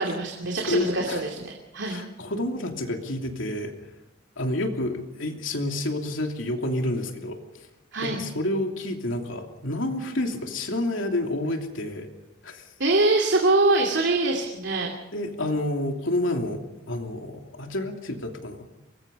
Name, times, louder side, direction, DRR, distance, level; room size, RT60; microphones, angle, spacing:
voice 1, 0.0-2.0 7.9-8.2 12.8-14.9, right 2 dB, 65° right, 1 dB, 2.6 m, -24 dB
voice 2, 0.7-1.2 1.8-3.7 4.4-7.4 8.0-12.1 12.4-12.6 15.1-18.7, left 1 dB, 85° left, 3 dB, 3.0 m, -29 dB
24.0 x 21.0 x 5.4 m, 0.98 s
head